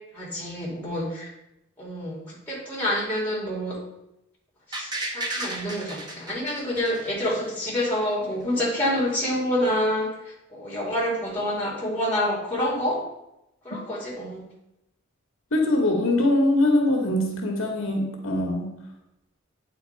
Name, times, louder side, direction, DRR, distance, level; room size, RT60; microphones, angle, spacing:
voice 1, 0.1-1.3 1.8-3.8 4.7-13.0 13.6-14.4, left 1 dB, 10° left, -5 dB, 2.4 m, -27 dB
sound 1, 4.7-7.7 8.0-8.1, right 1 dB, 20° right, 1.0 m, -33 dB
voice 2, 15.5-18.7, left 1 dB, 70° left, 1 dB, 1.2 m, -22 dB
8.7 x 3.9 x 4.5 m, 0.87 s
head